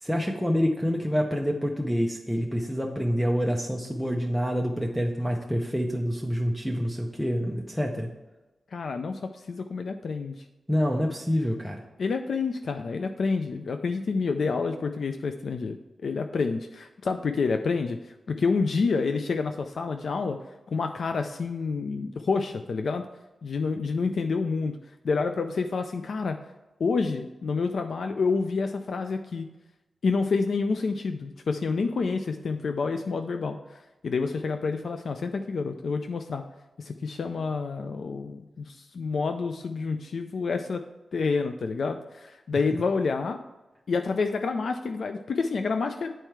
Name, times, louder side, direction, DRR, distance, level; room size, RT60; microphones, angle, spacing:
voice 1, 0.0-8.1 10.7-11.8, equal, ahead, 1 dB, 0.6 m, -27 dB
voice 2, 8.7-10.4 12.0-20.4 20.7-23.0 23.4-24.8 25.0-26.4 26.8-29.5 30.0-36.4 36.8-40.8 41.1-43.4 43.9-46.1, left 4 dB, 65° left, 7 dB, 0.4 m, -28 dB
9.0 x 4.5 x 4.6 m, 1.1 s
wide cardioid pair, 125°, 0 cm